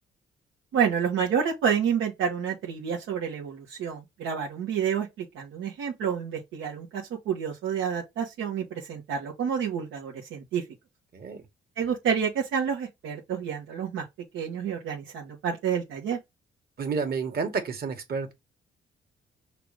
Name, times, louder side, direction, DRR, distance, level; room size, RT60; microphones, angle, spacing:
voice 1, 0.7-10.6 11.8-14.0 14.3-16.2, right 7 dB, 85° right, 1.4 m, -29 dB
voice 2, 11.1-11.4 16.8-18.3, right 5 dB, 50° right, 1.7 m, -30 dB
5.8 x 2.5 x 3.4 m
cardioid pair, 90°, 20 cm